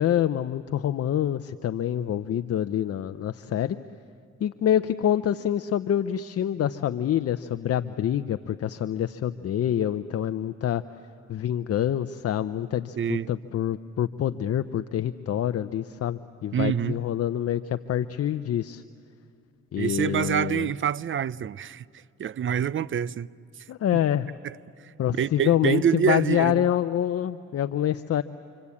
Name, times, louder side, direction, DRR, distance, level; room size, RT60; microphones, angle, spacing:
voice 1, 0.0-3.8 4.4-10.8 11.3-18.8 19.7-20.7 23.7-24.3 25.0-28.2, left 10 dB, 50° left, 0.7 m, -26 dB
voice 2, 13.0-13.3 16.5-17.0 19.8-21.8 22.2-23.3 24.4-24.5 25.2-26.7, right 9 dB, 40° right, 0.6 m, -26 dB
27.5 x 25.5 x 8.5 m
cardioid pair, 90°, 30 cm